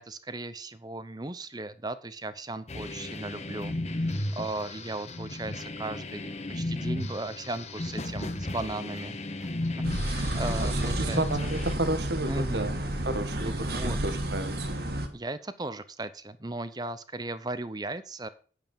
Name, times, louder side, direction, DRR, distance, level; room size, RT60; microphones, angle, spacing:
voice 1, 0.0-9.2 10.0-11.2 12.3-12.7 13.4-14.0 15.1-18.3, right 2 dB, 20° right, 13 dB, 0.7 m, -37 dB
sound 1, 2.7-11.7, left 2 dB, 40° left, 1.2 m, -35 dB
sound 2, 9.8-15.1, right 1 dB, 60° right, 1.7 m, -31 dB
voice 2, 10.3-12.8 13.0-14.8, right 2 dB, 75° right, 10 dB, 1.4 m, -32 dB
9.4 x 7.9 x 5.3 m, 0.39 s
head